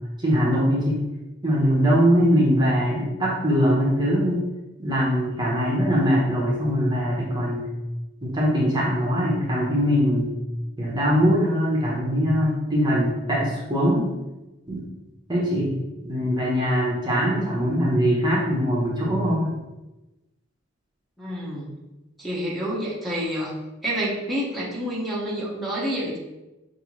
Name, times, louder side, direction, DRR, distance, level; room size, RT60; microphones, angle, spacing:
voice 1, 0.2-1.0 1.4-4.4 4.8-7.7 8.2-10.3 10.8-14.1 14.7-14.9 15.3-15.7 16.0-19.6, equal, 25° right, -4 dB, 0.9 m, -22 dB
voice 2, 21.2-21.7 22.2-23.5 23.8-26.2, equal, ahead, -6 dB, 1.0 m, -28 dB
5.4 x 2.7 x 3.0 m, 1.0 s
head